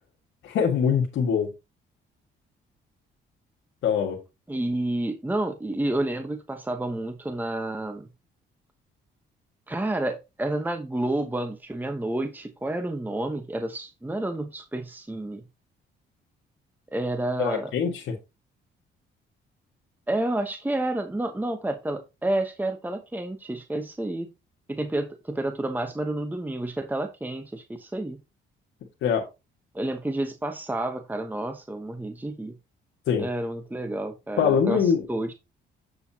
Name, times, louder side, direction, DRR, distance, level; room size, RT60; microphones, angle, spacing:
voice 1, 0.4-1.5 3.8-4.2 17.4-18.1 29.0-29.2 33.1-33.3 34.4-35.0, left 7 dB, 80° left, 1.9 m, -23 dB
voice 2, 4.5-8.1 9.7-15.4 16.9-17.7 20.1-24.3 24.7-28.2 29.7-32.6 33.2-35.3, right 1 dB, 10° right, 1.0 m, -30 dB
8.1 x 6.9 x 2.9 m
cardioid pair, 90°, 20 cm